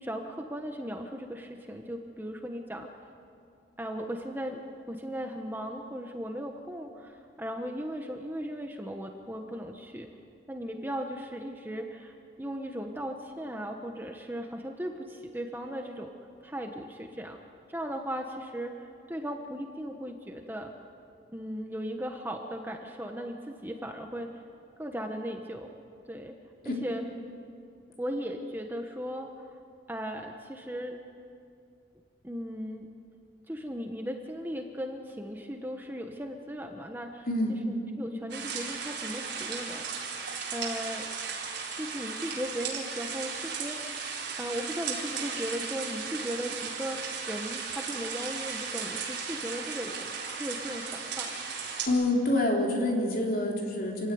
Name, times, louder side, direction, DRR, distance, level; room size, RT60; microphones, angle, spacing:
voice 1, 0.0-2.9 3.8-4.6 4.9-10.1 10.5-16.1 16.4-17.4 17.7-20.7 21.3-24.3 24.8-25.7 26.1-26.3 26.6-27.0 28.0-29.5 29.9-31.0 32.2-32.9 33.5-37.3 37.6-39.9 40.5-41.1 41.7-44.1 44.4-47.0 47.3-51.5, equal, 10° right, 3 dB, 1.2 m, -37 dB
voice 2, 37.3-37.6 51.9-54.1, left 1 dB, 50° left, -1 dB, 4.0 m, -27 dB
sound 1, 38.3-51.9, right 5 dB, 65° right, 4.3 m, -36 dB
26.5 x 16.5 x 9.5 m, 2.4 s
head